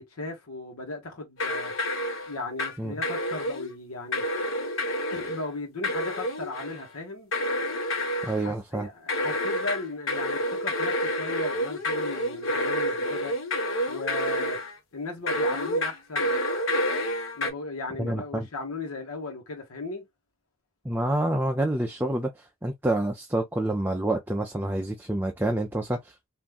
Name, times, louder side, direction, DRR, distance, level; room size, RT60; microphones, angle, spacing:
voice 1, 0.0-1.7 2.3-4.2 5.1-7.3 8.4-13.3 13.9-14.6 14.9-16.4 17.3-20.1, left 2 dB, 85° left, 1.2 m, -36 dB
sound 1, 1.4-2.8 3.0-3.7 4.1-5.5 5.8-6.9 7.3-8.5 9.1-14.8 15.3-17.5, left 1 dB, 65° left, 1.1 m, -29 dB
voice 2, 8.2-8.9 18.0-18.5 20.8-26.3, right 1 dB, 10° right, 0.4 m, -28 dB
3.5 x 2.6 x 2.3 m
head